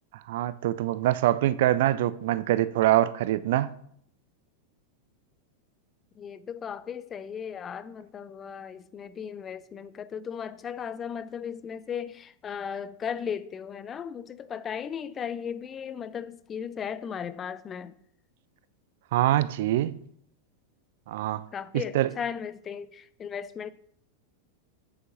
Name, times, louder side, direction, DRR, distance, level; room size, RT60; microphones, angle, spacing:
voice 1, 0.3-3.7 19.1-20.0 21.1-21.4 21.7-22.1, right 14 dB, 55° right, 0.3 m, -24 dB
voice 2, 6.2-17.9 21.5-23.7, left 7 dB, 25° left, 0.4 m, -36 dB
8.4 x 7.1 x 3.0 m
figure-of-eight pair, 90°, 0 cm